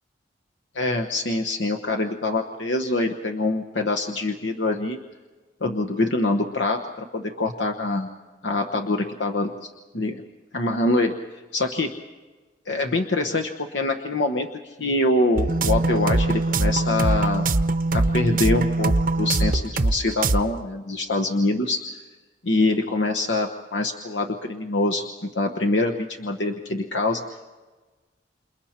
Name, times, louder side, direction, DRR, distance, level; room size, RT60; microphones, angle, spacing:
voice 1, 0.7-5.0 5.6-8.1 8.4-10.2 10.5-11.1 11.5-11.9 12.7-17.4 17.9-21.8 22.4-25.0 25.3-27.2, left 2 dB, 80° left, 3 dB, 1.1 m, -24 dB
sound 1, 15.4-20.0 20.2-20.4, right 2 dB, 50° right, 0.7 m, -22 dB
28.5 x 28.0 x 4.4 m, 1.3 s
head